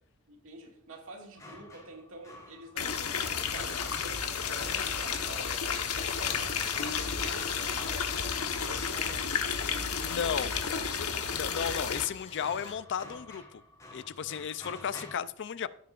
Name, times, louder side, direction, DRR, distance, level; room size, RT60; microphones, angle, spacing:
voice 1, 0.3-5.6 6.2-6.8 7.2-11.4, right 2 dB, 65° right, 2.1 m, -48 dB
sound 1, 1.3-9.1 11.9-15.2, left 2 dB, 15° left, 3.1 m, -50 dB
sound 2, 2.8-12.1, left 6 dB, 80° left, 1.1 m, -32 dB
Tools, 5.3-12.8, left 4 dB, 30° left, 1.8 m, -48 dB
voice 2, 10.0-10.5 11.3-13.6 13.9-15.7, left 7 dB, 55° left, 0.4 m, -34 dB
16.0 x 8.5 x 2.5 m
head